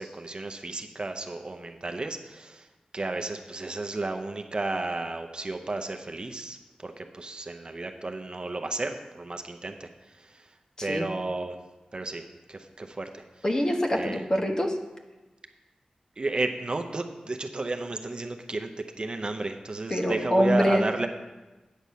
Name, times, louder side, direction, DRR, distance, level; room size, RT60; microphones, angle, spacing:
voice 1, 0.0-2.6 2.9-6.6 6.8-9.9 10.8-11.6 11.9-12.2 12.5-13.2 13.9-14.2 16.2-18.7 19.0-21.1, right 2 dB, 40° right, 5 dB, 0.7 m, -32 dB
voice 2, 13.4-14.7 19.9-20.8, equal, 25° left, 2 dB, 1.1 m, -24 dB
9.2 x 6.7 x 5.6 m, 1.1 s
wide cardioid pair, 100°, 2 cm